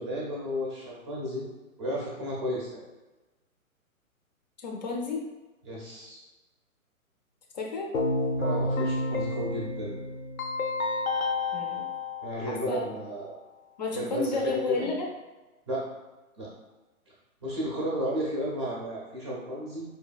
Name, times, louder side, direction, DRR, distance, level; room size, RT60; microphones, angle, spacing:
voice 1, 0.0-1.4 1.8-2.9 5.6-6.2 8.4-10.0 12.2-13.4 13.9-14.9 15.7-15.8 16.4-16.5 17.4-19.8, equal, 20° right, -5 dB, 0.6 m, -33 dB
voice 2, 4.6-5.2 7.5-7.9 11.5-11.8 12.5-12.8 13.8-15.1, left 3 dB, 30° left, 0 dB, 0.5 m, -31 dB
Keyboard (musical), 7.9-12.9, left 2 dB, 75° left, 0.7 m, -30 dB
4.9 x 2.7 x 2.3 m, 1.1 s
figure-of-eight pair, 130°, 43 cm